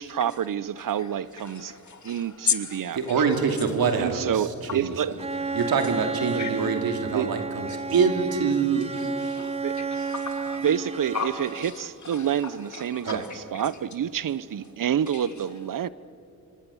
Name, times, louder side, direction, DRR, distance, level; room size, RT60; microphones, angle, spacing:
voice 1, 0.0-1.7 2.0-3.0 4.0-5.1 6.3-6.4 7.1-7.3 9.6-9.8 10.6-15.9, right 9 dB, 60° right, 0.9 m, -28 dB
voice 2, 1.4-3.0 6.4-6.5 8.9-10.7 11.1-11.7 12.0-12.3 12.7-13.6 15.1-15.2, left 6 dB, 50° left, 2.7 m, -34 dB
voice 3, 2.9-4.9 5.5-8.9 13.0-13.2, right 5 dB, 75° right, 2.6 m, -25 dB
Bowed string instrument, 5.2-11.9, right 4 dB, 15° right, 0.8 m, -32 dB
27.0 x 25.5 x 7.2 m
cardioid pair, 55°, 36 cm